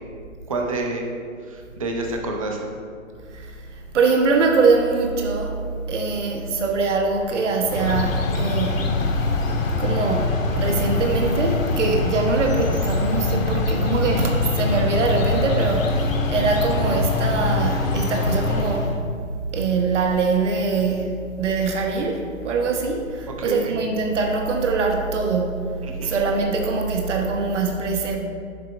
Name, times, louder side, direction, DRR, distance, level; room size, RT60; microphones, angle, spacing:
voice 1, 0.5-1.1 1.5-2.7 23.4-23.8 25.8-26.2, right 2 dB, 25° right, 1 dB, 0.5 m, -28 dB
voice 2, 3.3-5.6 5.9-8.9 9.8-19.0 19.5-25.6 26.0-28.2, right 4 dB, 60° right, 2 dB, 1.1 m, -23 dB
sound 1, 7.6-19.0, left 3 dB, 70° left, 1.2 m, -23 dB
7.5 x 4.1 x 5.9 m, 2.2 s
hypercardioid pair, 160°, 41 cm